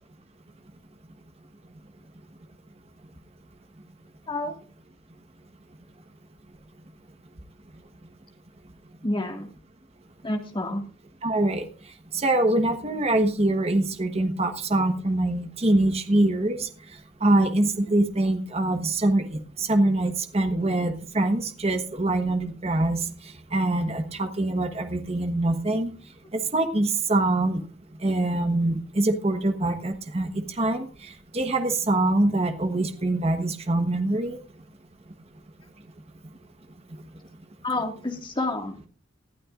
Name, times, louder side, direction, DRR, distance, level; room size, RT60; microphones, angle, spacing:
voice 1, 9.0-9.5 10.2-10.8 37.6-38.8, left 2 dB, 25° left, 3 dB, 2.0 m, -29 dB
voice 2, 11.2-11.6 12.1-16.7 17.2-19.3 19.6-23.0 23.5-25.9 26.3-27.6 28.0-30.9 31.3-34.4, right 2 dB, 30° right, 7 dB, 1.2 m, -24 dB
19.5 x 12.0 x 2.5 m, 0.40 s
head